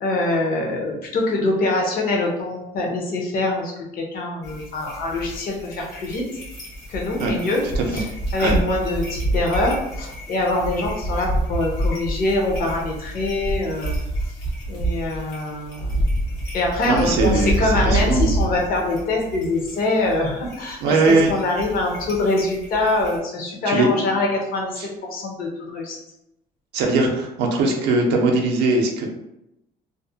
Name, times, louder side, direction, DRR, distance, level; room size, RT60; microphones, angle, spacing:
voice 1, 0.0-6.3 6.9-7.6 7.9-8.0 8.3-14.0 14.7-16.0 16.5-26.0, left 2 dB, 60° left, 0 dB, 0.7 m, -24 dB
sound 1, 4.4-23.2, right 1 dB, 80° left, 1.2 m, -28 dB
voice 2, 7.6-8.0 8.4-8.6 16.8-18.3 20.8-21.3 23.7-24.1 24.8-24.9 26.7-29.1, right 3 dB, 85° right, 1 dB, 0.5 m, -20 dB
2.5 x 2.1 x 2.6 m, 0.87 s
cardioid pair, 110°, 17 cm